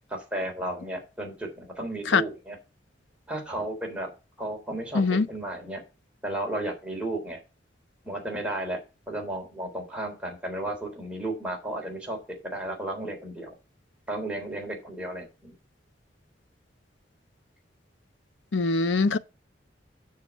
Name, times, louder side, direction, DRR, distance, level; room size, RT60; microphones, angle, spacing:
voice 1, 0.1-2.6 3.3-4.1 4.4-5.8 6.2-7.4 8.0-13.6 14.1-15.5, right 1 dB, 5° right, 3.6 m, -33 dB
voice 2, 18.5-19.2, left 4 dB, 85° left, 0.7 m, -22 dB
7.4 x 6.4 x 7.1 m
head